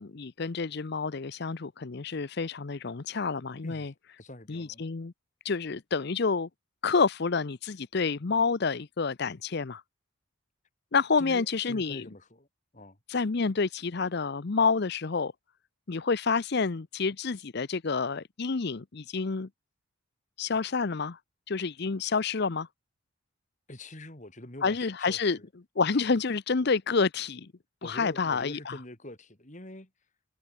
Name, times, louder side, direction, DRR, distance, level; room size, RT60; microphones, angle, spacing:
voice 1, 0.0-3.9 4.5-5.1 5.4-6.5 6.8-9.8 10.9-12.0 13.1-15.3 15.9-19.5 20.4-21.2 21.5-22.7 24.6-25.4 25.8-27.5 27.8-28.7, left 4 dB, 50° left, 0.7 m, -28 dB
voice 2, 4.2-4.8 11.2-12.5 12.7-13.0 23.7-25.5 27.8-29.9, left 1 dB, 35° left, 3.1 m, -45 dB
head